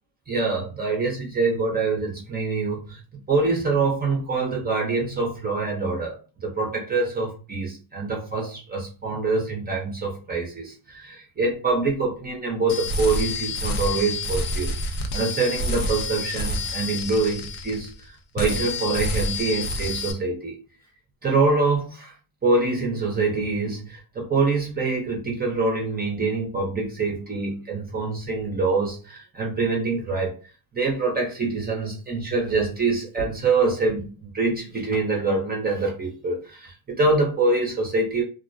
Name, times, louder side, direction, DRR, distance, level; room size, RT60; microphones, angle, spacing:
voice 1, 0.3-3.0 3.3-14.7 15.1-17.9 18.3-20.6 21.2-22.1 22.4-30.3 30.7-38.2, right 3 dB, 20° right, 0.7 m, -25 dB
sound 1, 12.7-18.1 18.4-20.1, left 2 dB, 50° left, 0.6 m, -28 dB
2.4 x 2.1 x 2.5 m
cardioid pair, 115°, 45 cm